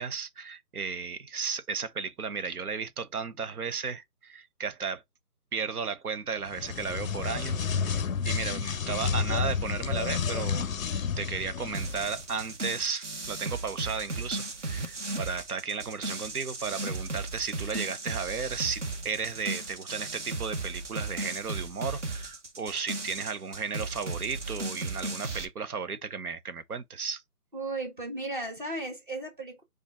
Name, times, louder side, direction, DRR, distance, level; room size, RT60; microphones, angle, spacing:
voice 1, 0.0-5.0 5.5-7.6 7.8-27.2, right 5 dB, 70° right, 0.9 m, -34 dB
sound 1, 6.5-12.2, left 6 dB, 60° left, 0.5 m, -30 dB
sound 2, 11.7-25.5, right 3 dB, 50° right, 1.1 m, -36 dB
voice 2, 27.5-29.6, right 2 dB, 35° right, 1.4 m, -35 dB
5.0 x 2.4 x 4.1 m
figure-of-eight pair, 170°, 46 cm